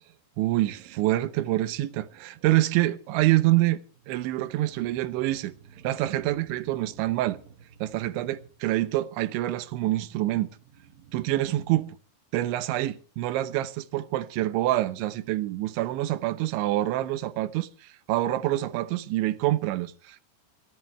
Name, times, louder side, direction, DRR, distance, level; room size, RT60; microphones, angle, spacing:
voice 1, 0.4-5.5 5.8-7.4 7.8-10.5 11.1-12.0 12.3-20.2, right 16 dB, 85° right, 3.4 m, -26 dB
sound 1, 0.5-1.2 2.1-3.1 3.8-8.7 10.1-11.8, right 8 dB, 60° right, 2.9 m, -53 dB
22.5 x 18.0 x 3.3 m
omnidirectional pair, 5.2 m